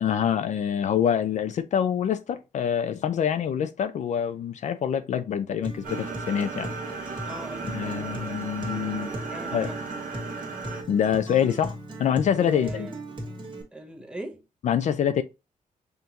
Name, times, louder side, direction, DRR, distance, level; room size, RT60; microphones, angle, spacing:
voice 1, 0.0-6.7 7.6-9.1 9.5-9.7 10.9-12.9 14.6-15.2, left 8 dB, 60° left, 0.4 m, -26 dB
Acoustic guitar, 5.6-13.6, right 1 dB, 35° right, 1.5 m, -37 dB
sound 1, 5.8-10.8, right 4 dB, 85° right, 1.3 m, -36 dB
voice 2, 7.3-8.6 9.3-9.8 12.4-13.0 13.7-14.4, right 1 dB, 5° right, 0.9 m, -41 dB
5.6 x 2.6 x 2.8 m
cardioid pair, 125°, 14 cm